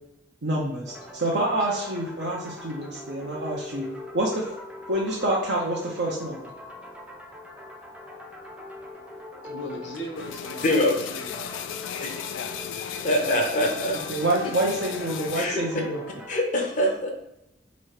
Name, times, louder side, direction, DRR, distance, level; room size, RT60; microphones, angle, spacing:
voice 1, 0.4-3.8 4.1-4.4 4.9-6.4 14.1-16.0, right 1 dB, 65° right, -4 dB, 0.7 m, -27 dB
sound 1, 0.9-16.4, left 1 dB, 5° right, 0.4 m, -41 dB
voice 2, 9.4-11.4 14.4-14.5, equal, 75° left, 0 dB, 1.0 m, -38 dB
sound 2, 10.2-15.5, left 9 dB, 90° left, 0.3 m, -36 dB
voice 3, 10.6-11.0 12.0-12.2 13.0-14.0 15.3-15.6 16.3-17.1, left 1 dB, 40° left, 2 dB, 0.6 m, -23 dB
3.1 x 2.8 x 4.4 m, 0.82 s
head